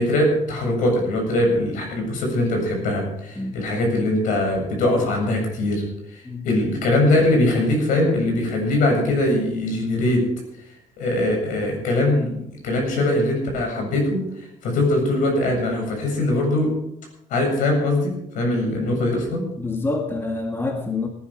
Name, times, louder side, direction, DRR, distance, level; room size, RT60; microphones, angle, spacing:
voice 1, 0.0-5.8 6.1-10.2 11.0-16.7 17.3-19.5, left 1 dB, 80° left, 2 dB, 7.5 m, -21 dB
voice 2, 19.6-21.1, left 3 dB, 15° left, 3 dB, 1.9 m, -27 dB
19.0 x 11.0 x 5.1 m, 0.80 s
cardioid pair, 150°, 13 cm